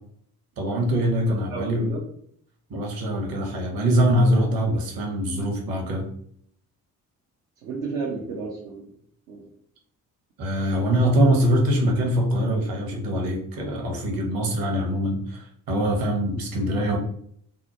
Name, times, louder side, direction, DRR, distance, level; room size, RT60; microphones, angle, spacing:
voice 1, 0.6-1.9 2.7-6.0 10.4-17.0, equal, 45° right, 0 dB, 1.0 m, -23 dB
voice 2, 1.3-2.0 7.6-8.9 9.3-9.5, right 4 dB, 65° right, -4 dB, 0.7 m, -33 dB
2.8 x 2.0 x 2.8 m, 0.65 s
figure-of-eight pair, 45°, 49 cm